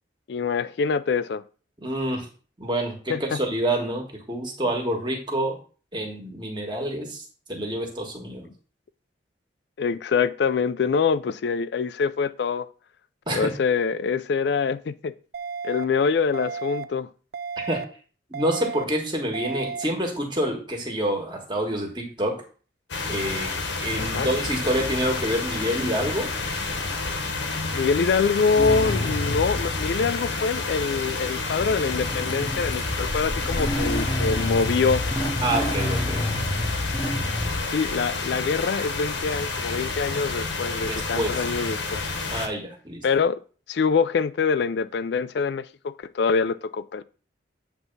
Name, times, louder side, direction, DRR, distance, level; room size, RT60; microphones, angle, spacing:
voice 1, 0.3-1.4 3.1-3.4 9.8-12.7 13.3-15.1 15.6-17.1 24.0-24.3 27.7-35.0 37.7-42.0 43.0-43.4 43.7-47.0, left 5 dB, 70° left, 0.4 m, -25 dB
voice 2, 1.8-2.2 2.6-5.6 5.9-7.2 7.5-8.5 13.3-13.5 17.7-17.8 18.3-22.4 23.1-23.5 23.8-26.3 35.4-36.5 40.9-41.4 42.3-43.0, right 1 dB, 25° right, 1.5 m, -27 dB
sound 1, 15.3-15.8 16.3-16.8 17.3-17.8 18.3-18.8 19.3-19.8, right 5 dB, 60° right, 0.5 m, -33 dB
sound 2, 22.9-42.5, left 3 dB, 85° left, 1.3 m, -30 dB
Motorcycle / Engine starting, 28.6-37.6, left 1 dB, 25° left, 0.9 m, -29 dB
8.0 x 3.4 x 5.4 m
head